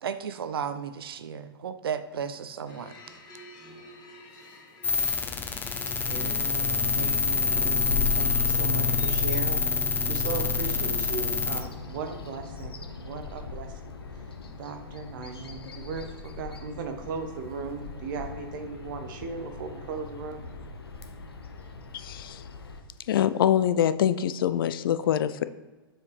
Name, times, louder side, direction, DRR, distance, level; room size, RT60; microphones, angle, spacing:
voice 1, 0.0-2.9, right 7 dB, 75° right, 11 dB, 0.5 m, -34 dB
sound 1, 2.7-9.4, left 1 dB, 35° left, 1.9 m, -48 dB
sound 2, 4.8-11.6, left 5 dB, 15° left, 0.6 m, -26 dB
voice 2, 6.1-14.2 14.6-20.4, right 5 dB, 55° right, 6 dB, 1.0 m, -37 dB
Bird vocalization bird call bird song, 6.4-22.8, left 4 dB, 85° left, 0.8 m, -40 dB
voice 3, 21.9-22.4 23.1-25.4, left 10 dB, 65° left, 13 dB, 0.4 m, -24 dB
7.1 x 4.5 x 3.3 m, 1.3 s
hypercardioid pair, 110°, 13 cm